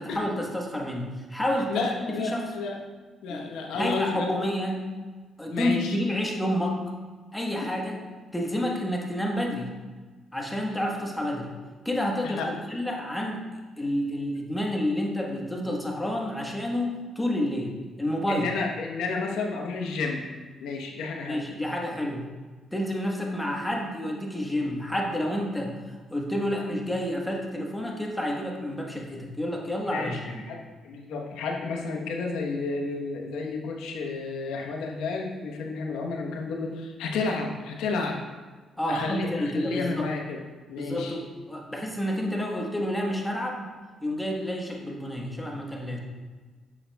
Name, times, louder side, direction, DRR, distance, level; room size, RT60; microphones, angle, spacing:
voice 1, 0.0-2.5 3.3-4.9 5.4-6.9 7.3-8.0 8.3-9.7 10.3-11.5 11.8-12.4 12.7-13.5 13.8-17.7 18.0-18.5 21.3-22.3 22.7-30.4 38.8-40.1 40.8-43.7 44.0-46.0, left 1 dB, 10° left, 0 dB, 1.2 m, -29 dB
voice 2, 1.7-2.8 3.2-4.3 5.5-6.0 12.2-12.5 18.3-20.3 20.6-21.4 29.9-30.2 30.5-38.2 38.9-40.4 40.7-41.2, left 4 dB, 90° left, 1 dB, 0.9 m, -31 dB
7.4 x 6.4 x 2.2 m, 1.4 s
cardioid pair, 90°, 0 cm